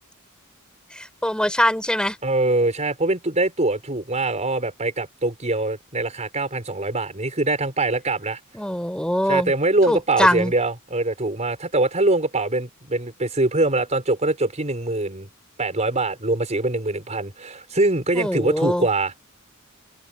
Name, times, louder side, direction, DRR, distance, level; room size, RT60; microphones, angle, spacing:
voice 1, 0.9-2.2 8.5-9.5 9.9-10.5 18.1-18.9, equal, 5° left, 4.8 m, -22 dB
voice 2, 2.2-8.4 9.3-15.3 15.6-19.1, right 2 dB, 35° right, 5.7 m, -23 dB
head